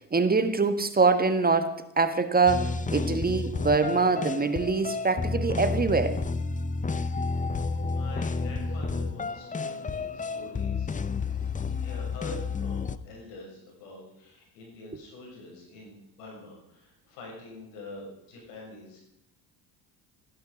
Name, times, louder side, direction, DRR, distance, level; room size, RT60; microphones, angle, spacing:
voice 1, 0.0-6.2, right 4 dB, 20° right, 1.4 m, -24 dB
sound 1, 2.5-13.0, left 4 dB, 15° left, 0.7 m, -31 dB
voice 2, 7.9-10.9 11.5-19.0, left 2 dB, 85° left, 6.9 m, -45 dB
15.5 x 12.0 x 5.1 m
supercardioid pair, 80°, 46 cm